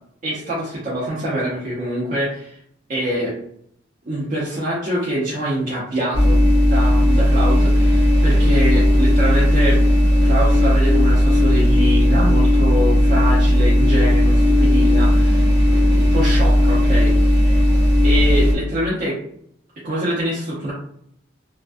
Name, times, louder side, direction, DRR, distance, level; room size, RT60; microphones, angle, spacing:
voice 1, 0.2-2.6 2.9-3.4 4.1-6.4 6.7-9.8 10.2-17.6 18.0-19.2 19.8-20.7, right 1 dB, 45° right, -7 dB, 0.7 m, -25 dB
sound 1, 6.1-18.5, left 1 dB, 70° right, 1.0 m, -15 dB
2.2 x 2.2 x 2.5 m, 0.68 s
head